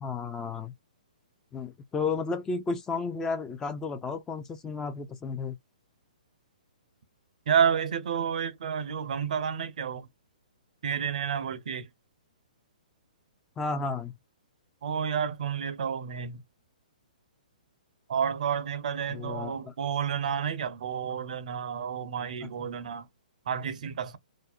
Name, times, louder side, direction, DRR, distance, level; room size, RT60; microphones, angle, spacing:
voice 1, 0.0-0.7 1.5-5.6 13.6-14.1 19.1-19.5, left 4 dB, 15° left, 0.4 m, -32 dB
voice 2, 7.5-10.1 10.8-11.9 14.8-16.4 18.1-23.1 23.5-24.2, right 7 dB, 60° right, 0.5 m, -30 dB
2.6 x 2.0 x 2.3 m
figure-of-eight pair, 125°, 5 cm